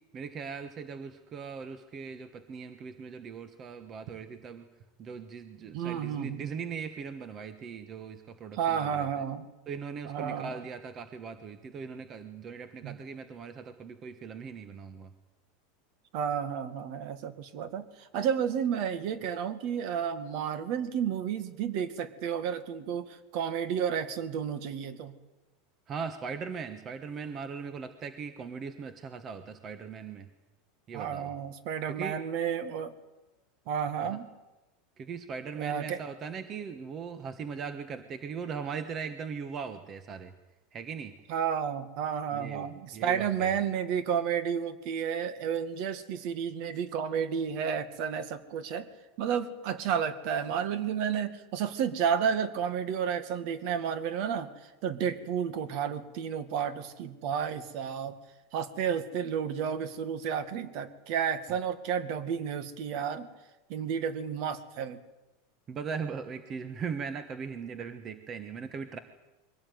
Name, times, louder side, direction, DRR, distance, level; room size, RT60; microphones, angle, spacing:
voice 1, 0.1-4.7 5.0-9.1 9.7-15.1 25.9-30.3 30.9-31.3 31.9-32.2 34.0-34.2 35.0-40.3 40.7-41.2 42.3-43.6 65.7-69.0, right 6 dB, 25° right, 10 dB, 1.2 m, -39 dB
voice 2, 5.7-6.5 8.5-9.5 10.1-10.6 12.8-13.0 16.1-25.1 30.9-32.9 33.7-34.3 35.5-36.0 41.3-48.9 49.2-58.2 58.5-63.3 63.7-65.0, right 8 dB, 50° right, 13 dB, 2.0 m, -31 dB
23.0 x 17.5 x 9.4 m, 1.0 s
supercardioid pair, 160°, 0 cm